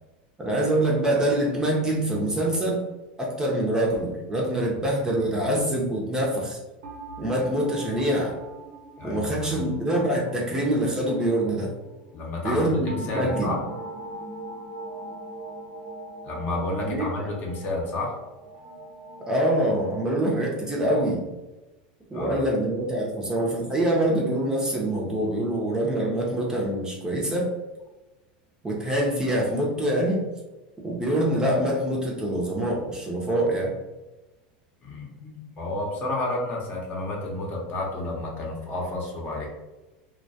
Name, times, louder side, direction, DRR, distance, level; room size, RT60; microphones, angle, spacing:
voice 1, 0.4-2.8 3.2-6.6 7.2-8.4 9.0-11.7 12.4-13.5 16.8-17.3 19.3-21.2 22.1-27.5 28.6-30.2 30.8-33.7, right 1 dB, 15° right, -3 dB, 0.6 m, -25 dB
sound 1, 6.8-12.2 12.8-20.3, right 2 dB, 80° right, 0.9 m, -41 dB
voice 2, 9.0-9.6 12.1-13.6 16.2-18.2 22.1-22.5 34.8-39.5, left 2 dB, 40° left, -2 dB, 0.7 m, -31 dB
2.2 x 2.2 x 2.6 m, 1.1 s
supercardioid pair, 115°, 5 cm